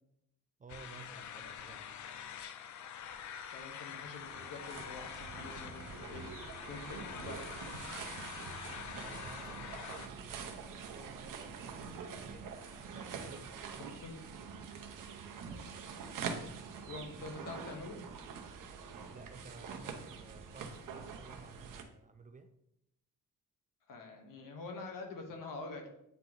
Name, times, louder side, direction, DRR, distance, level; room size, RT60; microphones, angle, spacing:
voice 1, 0.6-2.0 8.7-12.6 12.9-14.0 14.6-15.4 19.1-22.5, right 4 dB, 25° right, 8 dB, 0.4 m, -55 dB
sound 1, 0.7-10.1, left 8 dB, 60° left, 0.5 m, -46 dB
voice 2, 3.5-6.3 6.7-7.4 14.0-14.1 16.8-18.0 23.9-25.9, left 3 dB, 80° left, 3 dB, 1.2 m, -46 dB
sound 2, 3.9-21.8, right 5 dB, 75° right, 0.8 m, -45 dB
sound 3, 7.7-17.4, right 10 dB, 45° right, 0.8 m, -58 dB
8.3 x 2.9 x 3.9 m, 0.80 s
cardioid pair, 130°, 32 cm